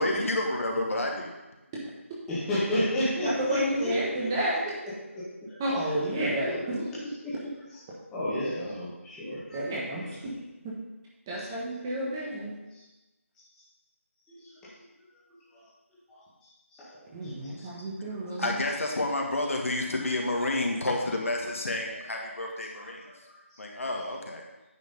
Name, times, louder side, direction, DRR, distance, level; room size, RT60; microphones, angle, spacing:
voice 1, 0.0-1.3 18.2-23.0 23.6-24.4, left 2 dB, 70° left, 0 dB, 1.8 m, -30 dB
voice 2, 2.3-6.8 7.2-7.8 8.1-9.6 10.0-10.1 11.3-11.5 12.3-12.4 12.7-12.8 14.3-14.9 15.3-15.6 16.1-16.2 16.7-17.7 22.7-23.8, equal, 5° left, -10 dB, 1.6 m, -34 dB
voice 3, 3.2-4.6 5.6-6.5 9.5-10.0 10.6-10.7 11.3-12.5 17.1-18.5, right 1 dB, 15° right, -6 dB, 1.3 m, -30 dB
9.2 x 4.8 x 5.4 m, 1.1 s
figure-of-eight pair, 165°, 8 cm